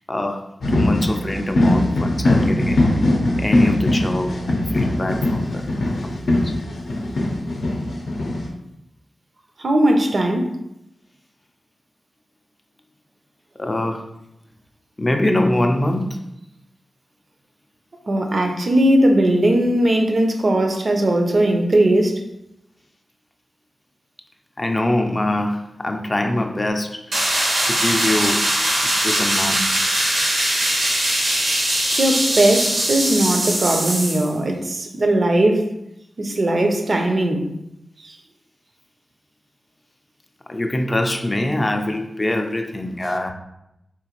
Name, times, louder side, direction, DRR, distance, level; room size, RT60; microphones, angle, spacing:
voice 1, 0.1-0.4 0.7-2.8 3.4-5.6 6.0-6.5 13.6-14.1 15.0-16.2 24.6-27.3 27.6-28.5 29.0-29.9 40.5-43.3, left 1 dB, 30° left, 0.4 m, -23 dB
Drumming band Olinda, 0.6-8.5, left 1 dB, 80° left, 0.5 m, -20 dB
voice 2, 9.6-10.5 18.1-22.2 32.0-35.7 36.2-37.5 38.0-38.1, right 1 dB, 55° right, 0.5 m, -18 dB
sound 1, 27.1-34.3, right 1 dB, 85° right, 0.9 m, -21 dB
3.8 x 2.5 x 2.9 m
cardioid pair, 65°, 0 cm